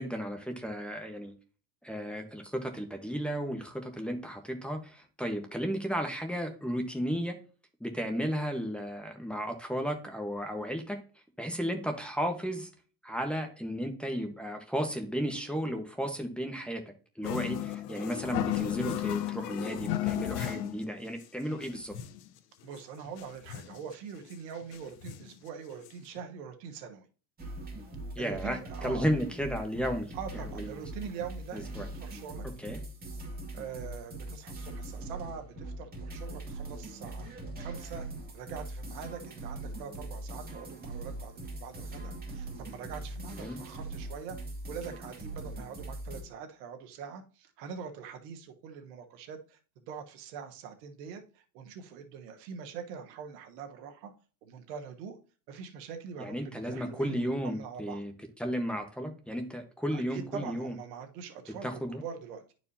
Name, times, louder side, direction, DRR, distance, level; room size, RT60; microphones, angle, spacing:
voice 1, 0.0-1.3 1.8-7.3 7.8-11.0 11.4-12.7 13.0-16.8 17.2-22.0 28.1-30.1 30.6-30.8 31.5-31.9 32.6-32.8 43.3-43.6 56.2-58.1 58.4-60.7 61.6-62.0, equal, ahead, 1.2 m, -34 dB
sound 1, 17.2-20.8 21.2-21.3 21.5-22.3 22.8-22.9 23.1-23.8 24.3-24.4 24.7-25.4 25.9-26.0 26.2-26.3, left 13 dB, 80° left, 0.9 m, -34 dB
voice 2, 22.6-27.1 28.2-29.0 30.1-32.5 33.5-37.3 37.6-38.1 38.3-44.4 44.7-54.1 54.4-55.2 55.5-58.0 59.9-62.5, right 6 dB, 85° right, 1.3 m, -43 dB
sound 2, 27.4-46.2, right 2 dB, 20° right, 2.5 m, -41 dB
11.0 x 4.8 x 2.8 m
supercardioid pair, 115°, 47 cm